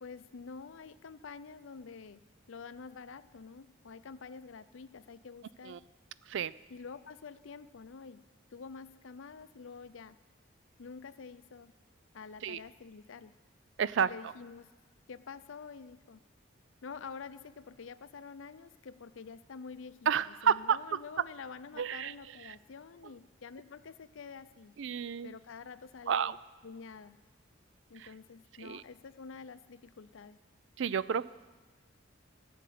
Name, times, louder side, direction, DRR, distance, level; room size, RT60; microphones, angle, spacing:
voice 1, 0.0-2.2 2.5-5.8 6.7-8.2 8.5-10.2 10.8-11.7 12.1-13.3 14.0-14.7 15.1-16.2 16.8-24.7 25.2-26.3 26.6-27.2 27.9-30.4, left 5 dB, 75° left, 14 dB, 0.5 m, -48 dB
voice 2, 13.8-14.1 20.1-21.0 21.8-22.1 22.4-22.5 24.8-25.3 26.1-26.4 28.0-28.1 28.6-28.8 30.8-31.3, right 7 dB, 65° right, 18 dB, 0.4 m, -30 dB
15.0 x 6.8 x 9.2 m, 1.3 s
head